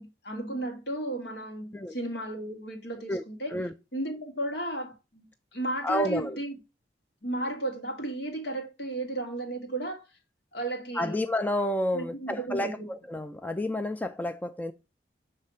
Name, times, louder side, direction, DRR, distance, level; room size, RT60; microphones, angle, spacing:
voice 1, 0.0-3.6 3.9-6.6 7.2-10.0 10.5-11.3 11.9-12.9, right 1 dB, 70° left, 2.0 m, -34 dB
voice 2, 5.8-6.4 11.0-12.7 13.1-14.7, left 1 dB, 10° left, 0.3 m, -29 dB
7.5 x 3.2 x 5.5 m
head